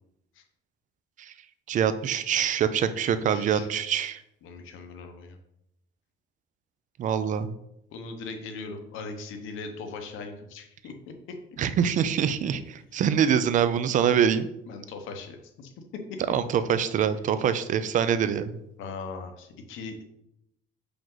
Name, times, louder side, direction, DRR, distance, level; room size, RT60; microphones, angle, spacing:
voice 1, 1.7-4.2 7.0-7.5 11.6-14.5 16.3-18.6, right 8 dB, 40° right, 12 dB, 0.4 m, -24 dB
voice 2, 3.1-3.7 4.4-5.4 7.9-11.4 14.7-16.2 18.8-20.0, left 4 dB, 70° left, 5 dB, 1.1 m, -39 dB
5.9 x 5.0 x 3.9 m, 0.82 s
cardioid pair, 160°, 21 cm